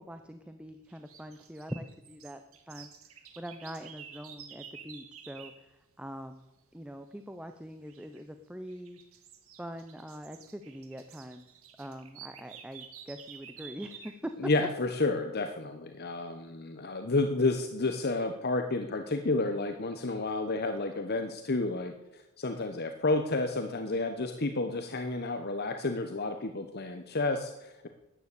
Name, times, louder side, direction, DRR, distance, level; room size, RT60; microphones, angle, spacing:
voice 1, 0.0-9.0 9.6-11.5 11.8-14.3, equal, 5° right, 7 dB, 0.7 m, -43 dB
sound 1, 0.9-5.6 7.8-8.2 8.7-14.2, right 8 dB, 75° right, 2.0 m, -51 dB
voice 2, 14.4-27.9, left 2 dB, 45° left, 6 dB, 1.1 m, -31 dB
13.0 x 10.0 x 8.5 m, 0.96 s
head